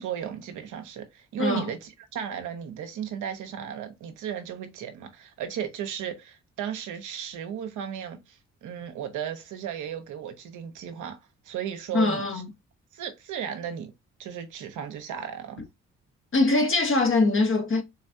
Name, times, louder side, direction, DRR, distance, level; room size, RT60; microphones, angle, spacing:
voice 1, 0.0-11.2 11.4-12.3 12.9-13.9 14.2-15.6, right 8 dB, 70° right, 0.9 m, -35 dB
voice 2, 1.4-1.7 11.9-12.5 16.3-17.8, left 3 dB, 40° left, 1.2 m, -22 dB
4.0 x 3.3 x 2.7 m
hypercardioid pair, 45°, 32 cm